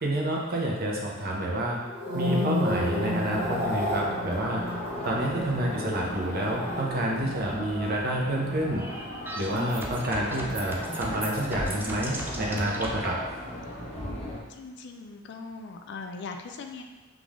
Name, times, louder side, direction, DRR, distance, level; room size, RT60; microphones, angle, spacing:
voice 1, 0.0-1.8 2.1-4.6 5.0-8.8 9.4-13.2, right 1 dB, 50° right, -2 dB, 0.8 m, -29 dB
sound 1, 1.9-10.2 10.5-10.9, left 1 dB, 30° right, 1.1 m, -33 dB
sound 2, 2.7-14.4, left 1 dB, 30° left, 1.0 m, -38 dB
sound 3, 8.7-13.1, right 1 dB, 10° right, 0.4 m, -36 dB
voice 2, 14.5-16.8, left 4 dB, 55° left, 4 dB, 0.4 m, -40 dB
3.7 x 3.1 x 3.6 m, 1.3 s
head